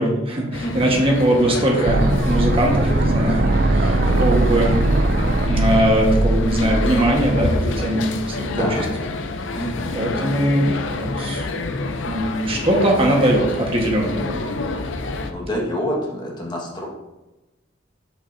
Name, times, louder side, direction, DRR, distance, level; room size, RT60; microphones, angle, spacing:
voice 1, 0.0-4.8 5.5-8.8 9.9-11.7 12.1-14.4, right 1 dB, 30° right, -1 dB, 1.4 m, -20 dB
sound 1, 0.5-15.3, left 2 dB, 80° left, 0.6 m, -28 dB
voice 2, 0.6-1.0 8.6-8.8 9.5-10.0 15.0-16.9, equal, 25° left, -2 dB, 1.6 m, -28 dB
sound 2, 1.9-7.8, right 2 dB, 55° right, 0.5 m, -20 dB
9.0 x 6.7 x 2.7 m, 1.0 s
head